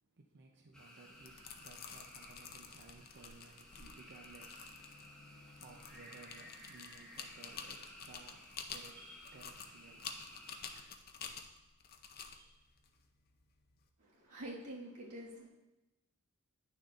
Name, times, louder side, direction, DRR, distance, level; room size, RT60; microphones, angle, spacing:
voice 1, 0.0-11.3 12.2-12.9, right 3 dB, 50° right, 1 dB, 0.6 m, -59 dB
sound 1, 0.7-10.8, equal, 5° left, 1.0 m, -57 dB
sound 2, 1.1-13.8, left 6 dB, 45° left, 0.6 m, -50 dB
Bowed string instrument, 4.5-9.8, left 3 dB, 85° left, 1.0 m, -66 dB
voice 2, 14.0-15.5, right 1 dB, 85° right, -4 dB, 1.8 m, -47 dB
10.0 x 6.4 x 2.5 m, 0.98 s
head